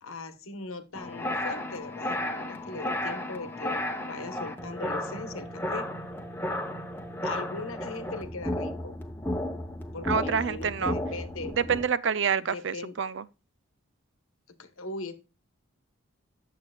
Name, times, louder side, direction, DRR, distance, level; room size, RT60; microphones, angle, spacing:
voice 1, 0.0-5.9 7.2-9.0 9.9-11.6 12.5-12.9 14.6-15.1, left 3 dB, 80° left, 1.2 m, -39 dB
sound 1, 0.9-11.8, left 1 dB, 10° left, 0.9 m, -33 dB
voice 2, 10.0-11.0 11.5-13.3, right 6 dB, 60° right, 0.5 m, -27 dB
11.0 x 7.6 x 2.3 m
head